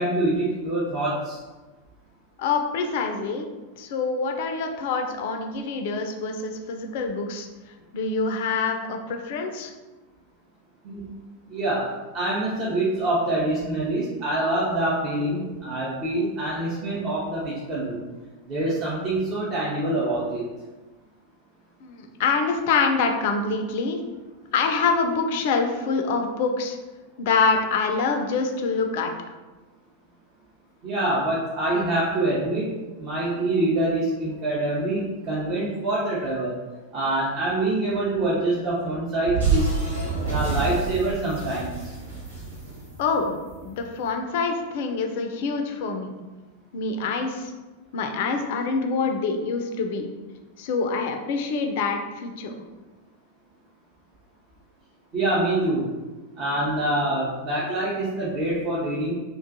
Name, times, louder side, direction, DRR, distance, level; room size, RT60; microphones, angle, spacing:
voice 1, 0.0-1.4 10.8-11.0 11.5-11.9 12.1-18.0 18.5-20.5 30.8-36.6 36.9-39.7 40.3-41.7 55.1-55.9 56.4-59.1, right 1 dB, 35° right, -6 dB, 0.6 m, -25 dB
voice 2, 2.4-3.5 3.8-7.5 7.9-9.7 21.8-24.0 24.5-26.8 27.2-29.1 43.0-43.3 43.6-46.1 46.7-47.5 47.9-50.1 50.6-52.6, left 4 dB, 50° left, 4 dB, 0.3 m, -25 dB
sound 1, 39.3-43.6, right 4 dB, 75° right, 0.8 m, -27 dB
2.4 x 2.3 x 2.5 m, 1.2 s
figure-of-eight pair, 90°, 0 cm